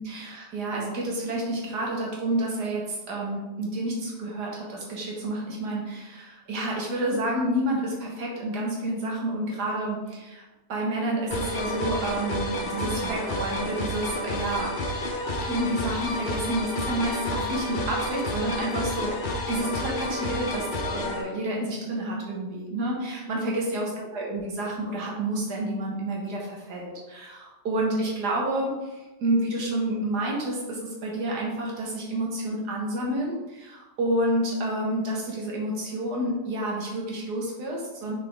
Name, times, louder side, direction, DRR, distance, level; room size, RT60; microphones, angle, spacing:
voice 1, 0.0-10.4 10.7-14.7 15.4-38.1, right 1 dB, 85° right, -2 dB, 2.0 m, -29 dB
sound 1, 11.3-21.2, left 1 dB, 45° left, 0.6 m, -30 dB
6.0 x 4.7 x 3.6 m, 1.1 s
omnidirectional pair, 1.7 m